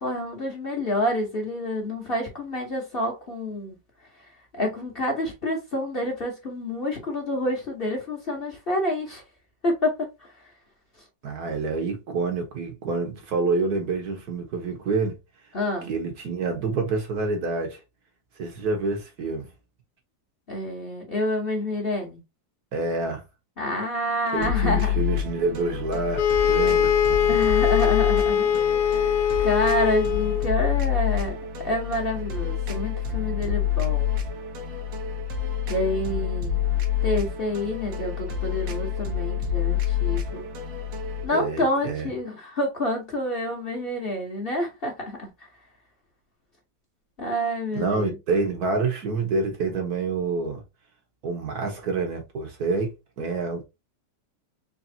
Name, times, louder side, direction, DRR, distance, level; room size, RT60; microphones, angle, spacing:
voice 1, 0.0-3.7 4.5-9.2 9.6-10.3 15.5-15.9 20.5-22.2 23.6-25.0 27.3-28.5 28.9-29.1 29.4-31.4 31.6-34.1 35.7-36.7 37.0-40.4 41.2-45.3 47.2-48.1, left 1 dB, 35° left, 1.2 m, -28 dB
voice 2, 11.2-15.2 15.9-17.8 18.4-19.5 22.7-23.2 24.3-27.2 41.3-42.1 47.7-50.6 51.2-53.6, right 3 dB, 60° right, 1.4 m, -27 dB
sound 1, 24.4-41.3, left 9 dB, 85° right, 1.7 m, -27 dB
sound 2, 26.2-30.6, left 8 dB, 65° left, 1.0 m, -22 dB
4.3 x 3.1 x 2.7 m
omnidirectional pair, 2.0 m